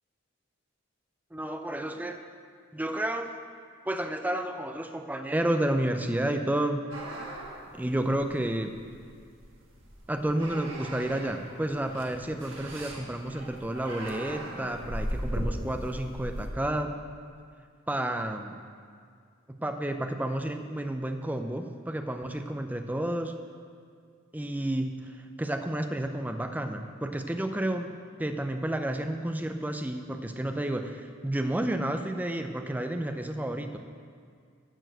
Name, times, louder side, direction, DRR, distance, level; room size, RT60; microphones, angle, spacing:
voice 1, 1.3-2.2 2.7-3.3 3.9-6.8 7.7-8.8 10.1-17.0 17.9-18.6 19.5-23.3 24.3-27.9 28.2-33.8, right 1 dB, 10° right, 6 dB, 0.5 m, -31 dB
sound 1, 6.9-16.5, right 1 dB, 65° right, 1.8 m, -38 dB
12.0 x 4.5 x 8.0 m, 2.2 s
head